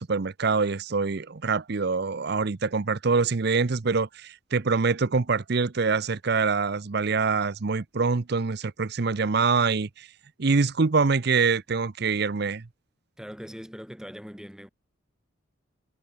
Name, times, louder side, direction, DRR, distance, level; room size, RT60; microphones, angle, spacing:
voice 1, 0.0-10.1 10.4-12.6, right 4 dB, 55° right, 0.7 m, -25 dB
voice 2, 13.2-14.7, equal, 5° right, 6.1 m, -41 dB
head